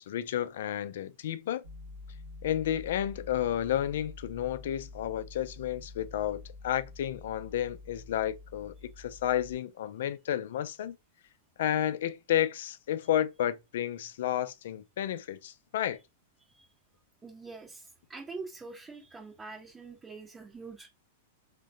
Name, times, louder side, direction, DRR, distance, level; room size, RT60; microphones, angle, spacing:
voice 1, 0.0-1.6 2.4-11.0 11.6-16.0, left 11 dB, 60° left, 0.4 m, -31 dB
sound 1, 1.6-9.6, left 3 dB, 60° right, 0.6 m, -47 dB
voice 2, 16.4-16.7 17.2-20.9, right 4 dB, 15° right, 0.7 m, -45 dB
3.6 x 2.2 x 2.6 m
figure-of-eight pair, 100°, 0 cm